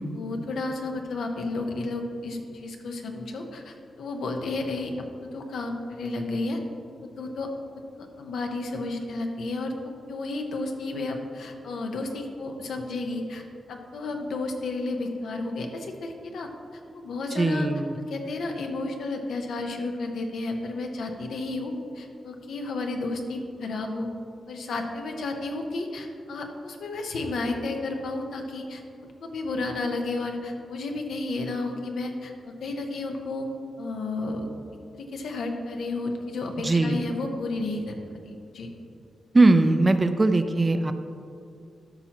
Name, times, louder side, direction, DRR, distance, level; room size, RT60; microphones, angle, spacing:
voice 1, 0.1-6.6 7.2-7.5 8.0-16.5 16.9-17.7 18.1-24.1 24.5-33.5 33.8-34.5 34.9-37.9 38.2-38.7, left 2 dB, 80° left, 3 dB, 0.9 m, -32 dB
voice 2, 17.3-18.0 36.6-37.1 39.3-40.9, right 2 dB, 25° right, 9 dB, 0.4 m, -20 dB
13.0 x 5.8 x 3.0 m, 2.5 s
wide cardioid pair, 120°, 0 cm